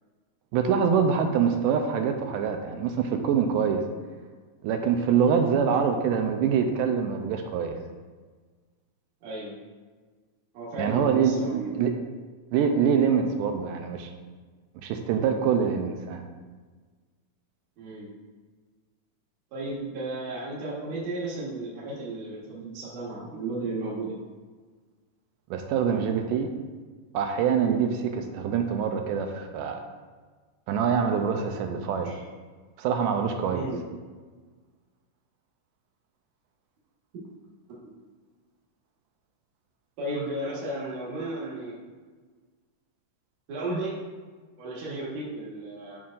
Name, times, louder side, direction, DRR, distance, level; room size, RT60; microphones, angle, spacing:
voice 1, 0.5-3.8 4.6-7.8 10.8-11.9 12.5-14.1 14.8-16.2 25.5-26.5 27.1-29.8 30.7-32.1 32.8-33.7, right 7 dB, 80° right, 5 dB, 2.1 m, -25 dB
voice 2, 9.2-9.5 10.5-11.8 17.8-18.1 19.5-24.1 27.6-27.8 32.0-32.2 33.5-33.8 40.0-41.7 43.5-44.0 44.6-46.0, right 2 dB, 60° right, -6 dB, 2.5 m, -34 dB
11.0 x 5.4 x 2.5 m, 1.4 s
omnidirectional pair, 3.9 m